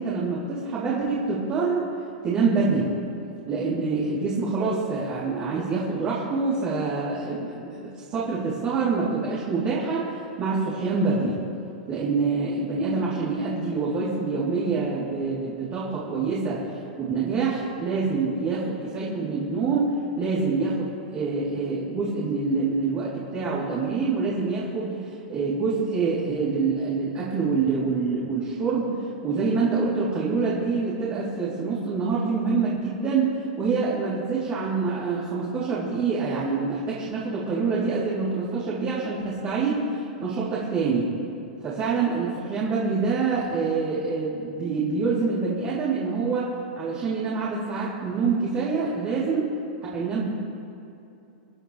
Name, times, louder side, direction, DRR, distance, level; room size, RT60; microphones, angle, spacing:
voice 1, 0.0-1.9 2.2-2.9 3.5-11.5 11.9-28.9 29.2-41.1 41.6-49.5 49.8-50.3, right 4 dB, 35° right, -8 dB, 3.7 m, -26 dB
26.5 x 10.0 x 3.4 m, 2.8 s
hypercardioid pair, 115°, 5 cm